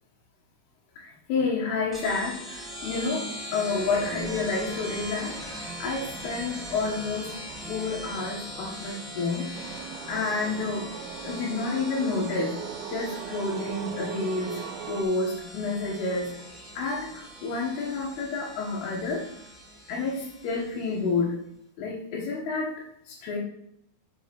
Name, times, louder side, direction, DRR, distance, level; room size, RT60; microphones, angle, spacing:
voice 1, 1.0-7.4 7.7-9.5 10.1-10.9 11.2-12.6 12.9-14.6 14.9-19.3 19.9-21.4 21.8-22.8 23.0-23.4, left 3 dB, 80° left, -4 dB, 3.2 m, -29 dB
sound 1, 1.9-21.1, equal, ahead, 0.8 m, -40 dB
sound 2, 9.5-15.0, right 10 dB, 85° right, 2.4 m, -39 dB
6.5 x 5.1 x 5.9 m, 0.75 s
omnidirectional pair, 4.5 m